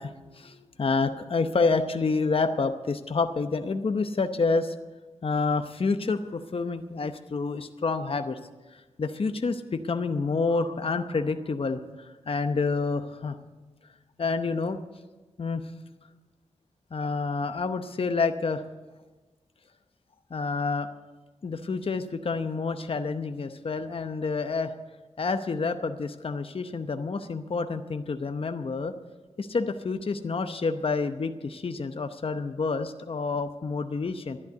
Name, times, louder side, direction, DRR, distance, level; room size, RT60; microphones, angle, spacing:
voice 1, 0.0-4.7 5.2-8.4 8.7-13.4 14.2-14.8 15.4-15.6 16.9-18.6 20.3-20.9 21.4-24.7 25.2-28.9 29.4-34.4, left 4 dB, 50° left, 8 dB, 0.8 m, -28 dB
11.5 x 11.0 x 8.0 m, 1.2 s
cardioid pair, 60°, 13 cm